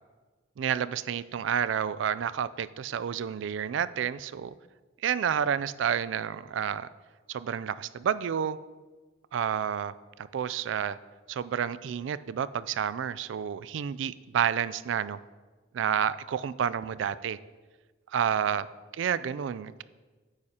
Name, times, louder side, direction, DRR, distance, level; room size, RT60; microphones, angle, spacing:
voice 1, 0.6-4.5 5.0-6.9 7.3-8.6 9.3-11.0 11.3-15.2 15.7-17.4 18.1-18.7 19.0-19.8, right 8 dB, 75° right, 17 dB, 0.3 m, -30 dB
9.6 x 9.0 x 2.9 m, 1.3 s
head